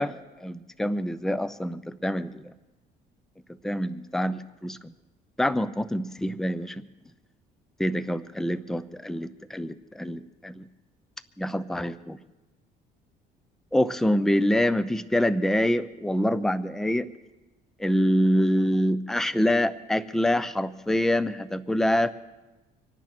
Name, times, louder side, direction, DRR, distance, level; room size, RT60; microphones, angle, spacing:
voice 1, 0.0-2.5 3.6-4.9 5.4-6.8 7.8-10.6 11.4-12.2 13.7-17.1 17.8-22.1, equal, ahead, 14 dB, 0.6 m, -26 dB
25.5 x 9.4 x 6.0 m, 1.1 s
cardioid pair, 110°, 17 cm